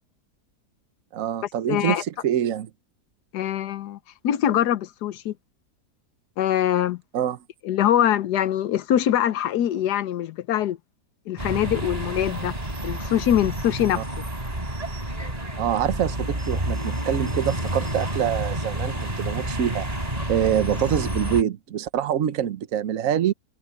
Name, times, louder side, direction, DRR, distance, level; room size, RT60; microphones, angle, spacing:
voice 1, 1.1-2.7 7.1-7.4 14.0-14.1 15.6-19.9 20.3-23.3, right 10 dB, 60° right, 1.3 m, -25 dB
voice 2, 1.7-2.0 3.3-4.0 4.2-5.3 6.4-7.0 7.6-10.8 11.3-12.5 12.8-14.0, left 11 dB, 80° left, 1.4 m, -23 dB
sound 1, 11.4-21.4, right 1 dB, 25° right, 4.6 m, -29 dB
omnidirectional pair, 1.7 m